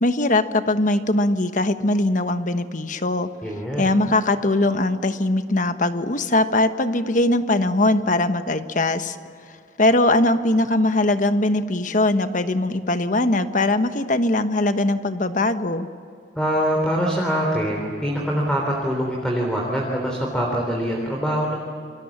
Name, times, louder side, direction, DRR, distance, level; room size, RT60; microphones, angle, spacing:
voice 1, 0.0-3.3 3.8-9.2 9.8-15.9, left 2 dB, 45° left, 9 dB, 1.3 m, -21 dB
voice 2, 3.4-3.9 16.4-21.6, equal, 5° left, -1 dB, 3.7 m, -24 dB
29.5 x 24.5 x 7.4 m, 2.4 s
head